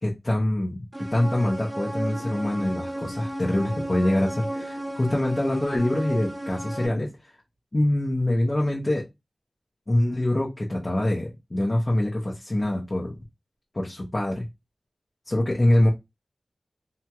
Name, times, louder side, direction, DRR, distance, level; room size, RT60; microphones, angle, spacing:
voice 1, 0.0-0.8 1.1-7.1 7.7-9.0 9.9-13.2 13.7-14.4 15.3-15.9, left 1 dB, 35° left, -3 dB, 0.8 m, -24 dB
sound 1, 1.0-6.9, right 1 dB, 20° right, 0.5 m, -34 dB
2.9 x 2.8 x 2.3 m, 0.21 s
wide cardioid pair, 60°, 0 cm